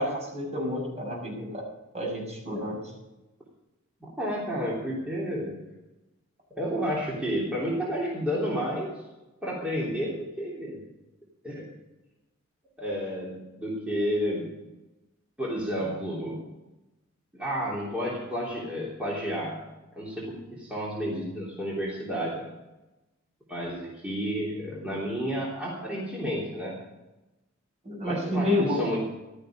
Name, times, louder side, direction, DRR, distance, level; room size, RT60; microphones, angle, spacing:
voice 1, 0.0-1.6 1.9-2.8 27.8-28.8, left 1 dB, 35° right, 0 dB, 6.4 m, -29 dB
voice 2, 4.2-5.5 6.5-9.0 9.4-10.8 11.4-11.7 12.8-14.5 15.4-16.4 17.3-19.6 19.9-22.5 23.5-26.8 28.0-29.1, equal, 5° right, -6 dB, 3.4 m, -31 dB
15.5 x 13.5 x 5.2 m, 1.0 s
head